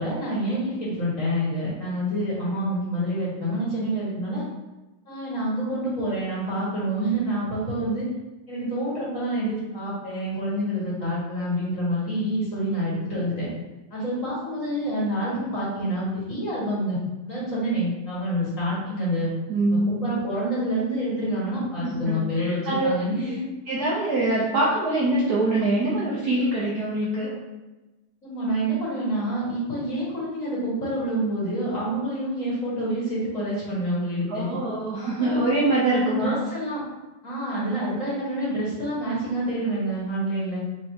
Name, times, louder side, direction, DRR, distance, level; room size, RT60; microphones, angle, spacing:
voice 1, 0.0-4.4 5.1-8.1 8.5-13.5 13.9-17.0 17.3-19.3 19.7-23.5 28.2-34.5 35.2-35.5 35.9-36.8 37.2-40.6, equal, 40° left, -8 dB, 1.9 m, -27 dB
voice 2, 19.5-20.1 21.8-22.9 23.7-27.3 34.3-36.4, right 2 dB, 60° right, -6 dB, 1.0 m, -24 dB
5.4 x 3.4 x 2.8 m, 1.1 s
omnidirectional pair, 2.3 m